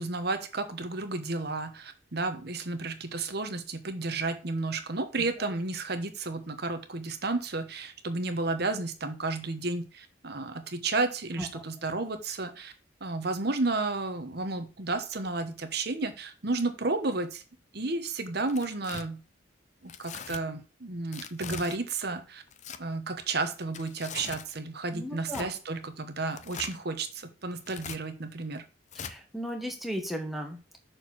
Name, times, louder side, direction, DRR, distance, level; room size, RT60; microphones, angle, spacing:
voice 1, 0.0-12.7 13.0-17.4 17.7-19.2 19.8-22.4 22.8-28.6, right 3 dB, 55° right, 7 dB, 1.1 m, -32 dB
Tearing, 18.4-19.0 19.9-20.4 21.1-21.8 22.5-22.8 23.6-24.5 25.3-25.5 26.3-26.8 27.6-28.0 28.9-29.1, left 6 dB, 40° left, 0.5 m, -41 dB
voice 2, 24.9-25.5 28.9-30.8, equal, ahead, 3 dB, 1.4 m, -36 dB
6.5 x 4.5 x 6.2 m, 0.34 s
head